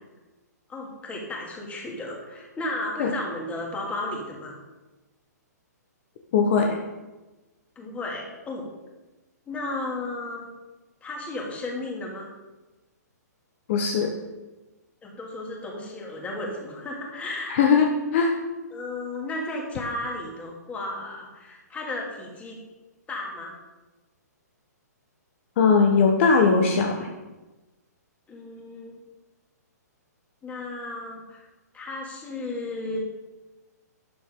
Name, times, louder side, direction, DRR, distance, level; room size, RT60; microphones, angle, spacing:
voice 1, 0.7-4.6 7.8-8.7 9.5-10.4 11.0-12.3 15.0-17.7 18.7-22.6 23.1-23.5 28.3-28.9 30.4-31.4 31.7-33.0, left 2 dB, 15° left, -1 dB, 2.9 m, -34 dB
voice 2, 6.3-6.8 13.7-14.1 17.5-18.3 25.6-27.1, left 5 dB, 45° left, 3 dB, 1.4 m, -20 dB
13.0 x 10.5 x 3.9 m, 1.1 s
hypercardioid pair, 135°, 9 cm